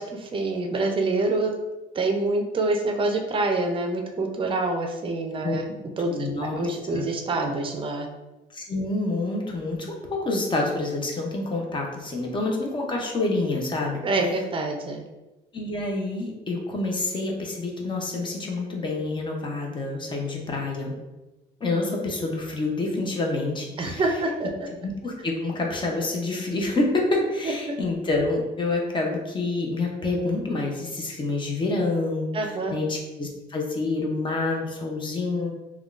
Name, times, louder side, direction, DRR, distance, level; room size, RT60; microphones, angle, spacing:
voice 1, 0.0-1.5 1.9-5.7 6.0-8.1 14.0-15.0 23.8-24.5 27.4-27.8 32.3-32.7, right 2 dB, 30° right, 2 dB, 0.5 m, -26 dB
voice 2, 6.1-7.1 8.5-14.0 15.5-21.0 21.6-24.0 24.8-35.5, left 2 dB, 30° left, 0 dB, 0.6 m, -27 dB
3.5 x 2.2 x 2.4 m, 1.1 s
cardioid pair, 110°, 17 cm